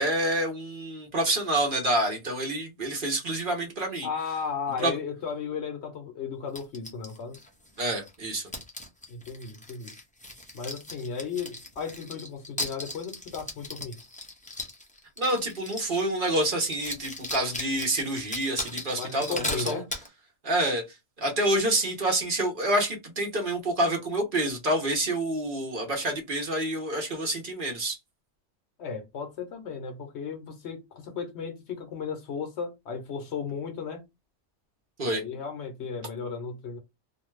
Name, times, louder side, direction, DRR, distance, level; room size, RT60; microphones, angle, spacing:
voice 1, 0.0-4.1 4.8-5.0 7.8-8.5 15.2-19.8 20.4-20.8 21.2-28.0 35.0-35.2, right 1 dB, 45° right, 0.9 m, -27 dB
voice 2, 4.0-7.4 9.1-9.9 10.5-14.0 18.9-19.9 28.8-34.0 35.0-36.8, left 6 dB, 65° left, 0.9 m, -35 dB
sound 1, 6.5-8.2 8.5-16.0 16.3-16.4 16.6-20.1, left 1 dB, 10° left, 0.4 m, -38 dB
2.5 x 2.2 x 3.1 m
omnidirectional pair, 1.3 m